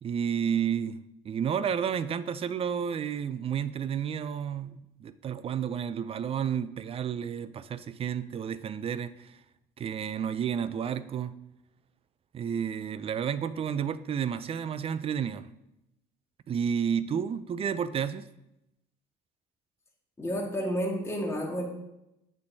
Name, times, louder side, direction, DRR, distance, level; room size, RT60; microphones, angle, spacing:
voice 1, 0.0-9.4 9.8-11.3 12.3-15.5 16.5-18.3, right 8 dB, 35° right, 15 dB, 0.4 m, -31 dB
voice 2, 20.2-21.6, equal, 15° left, -1 dB, 1.6 m, -30 dB
8.4 x 6.4 x 2.7 m, 0.87 s
cardioid pair, 110°, 17 cm